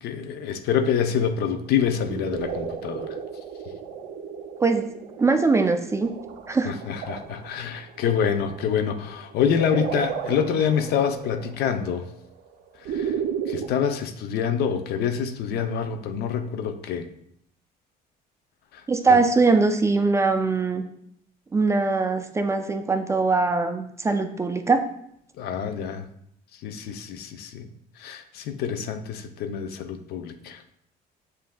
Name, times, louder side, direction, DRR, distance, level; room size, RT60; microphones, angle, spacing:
voice 1, 0.0-3.1 6.6-12.0 12.9-13.1 13.5-17.1 18.7-18.8 19.1-19.2 25.4-26.1 26.6-27.7 28.0-30.6, left 7 dB, 70° left, 7 dB, 0.5 m, -26 dB
sound 1, 1.7-13.7, right 7 dB, 75° right, 0.5 m, -34 dB
voice 2, 5.2-6.1 6.5-6.7 18.9-20.8 21.5-24.8, right 4 dB, 15° right, 7 dB, 0.3 m, -21 dB
7.2 x 2.6 x 2.2 m, 0.71 s
cardioid pair, 110°, 17 cm